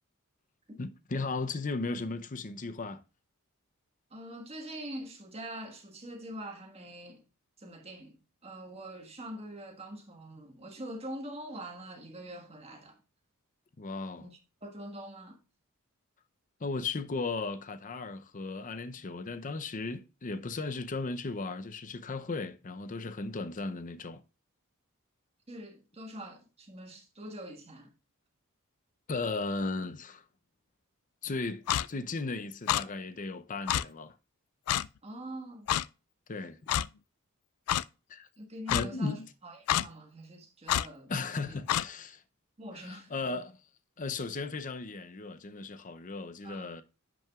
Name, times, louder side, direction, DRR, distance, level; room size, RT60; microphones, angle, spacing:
voice 1, 0.8-3.0 13.8-14.3 16.6-24.2 29.1-30.2 31.2-34.2 36.3-36.7 38.1-38.3 38.7-39.3 41.1-42.2 42.7-43.6 44.0-46.8, left 3 dB, 35° left, 0.6 m, -36 dB
voice 2, 4.1-7.3 7.6-13.0 14.2-14.3 14.6-15.4 25.5-27.9 35.0-35.7 38.4-41.6 42.6-43.1 46.4-46.8, right 1 dB, 30° right, 1.5 m, -44 dB
Clock, 31.7-31.9 32.7-32.8 33.7-33.8 34.7-34.9 35.7-35.8 36.7-36.9 37.7-37.8 38.7-38.8 39.7-39.9 40.7-40.9 41.7-41.9, left 11 dB, 90° left, 0.3 m, -27 dB
10.5 x 6.1 x 2.4 m
head